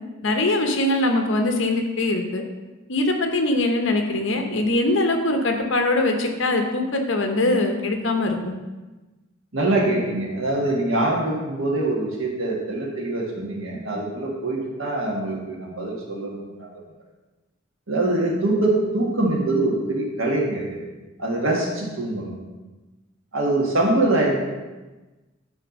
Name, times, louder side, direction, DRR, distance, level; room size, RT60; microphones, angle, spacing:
voice 1, 0.2-2.4 2.9-8.5, left 2 dB, 65° left, 4 dB, 0.9 m, -22 dB
voice 2, 9.5-16.7 17.9-20.8 21.2-22.3 23.3-24.4, right 2 dB, 80° right, -2 dB, 1.7 m, -24 dB
9.9 x 3.4 x 5.3 m, 1.2 s
head